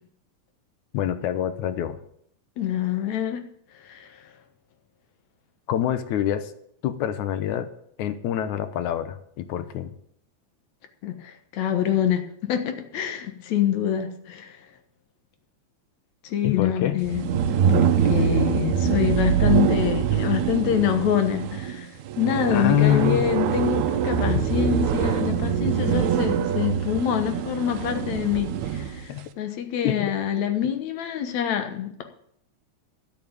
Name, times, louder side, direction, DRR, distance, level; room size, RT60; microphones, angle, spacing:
voice 1, 0.9-2.0 5.7-6.5 6.8-7.7 8.0-9.9 16.4-17.0 22.5-23.3 24.4-24.5 29.1-29.3 29.8-30.1, left 12 dB, 90° left, 11 dB, 2.4 m, -25 dB
voice 2, 2.6-3.4 3.8-4.2 11.0-14.6 16.2-17.2 17.7-32.0, left 10 dB, 75° left, 7 dB, 2.5 m, -26 dB
sound 1, 17.0-29.0, right 8 dB, 80° right, 2.1 m, -24 dB
11.0 x 8.1 x 8.8 m, 0.70 s
omnidirectional pair, 3.3 m